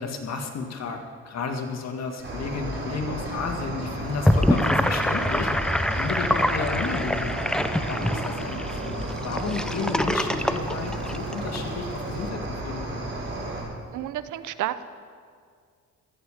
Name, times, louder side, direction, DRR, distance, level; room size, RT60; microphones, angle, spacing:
voice 1, 0.0-7.4 7.9-13.1, left 4 dB, 60° left, 4 dB, 2.0 m, -32 dB
Keyboard (musical), 2.2-2.3 2.7-2.9 3.3-3.4 3.8-3.9 4.3-4.5 4.8-5.0 5.4-5.5 5.9-6.0 6.4-6.6 7.0-7.1 7.5-7.6 8.0-8.2, left 1 dB, 35° left, 3.4 m, -48 dB
Cricket, 2.2-13.6, right 2 dB, 40° right, 4.1 m, -33 dB
Gurgling / Sink (filling or washing), 4.1-11.6, equal, ahead, 0.6 m, -25 dB
voice 2, 13.9-14.8, right 12 dB, 80° right, 13 dB, 0.7 m, -30 dB
17.0 x 13.5 x 5.0 m, 2.1 s
cardioid pair, 90°, 30 cm